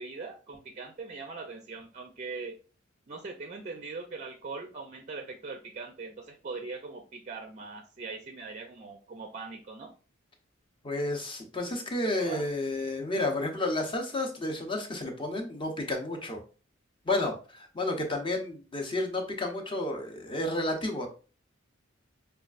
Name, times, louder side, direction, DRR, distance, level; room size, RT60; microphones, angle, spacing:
voice 1, 0.0-2.6 3.1-9.9 11.6-11.7 12.0-12.5, right 4 dB, 35° right, 5 dB, 0.4 m, -41 dB
voice 2, 10.8-16.4 17.0-21.1, left 2 dB, 25° left, 2 dB, 0.7 m, -31 dB
5.0 x 2.3 x 2.4 m, 0.36 s
head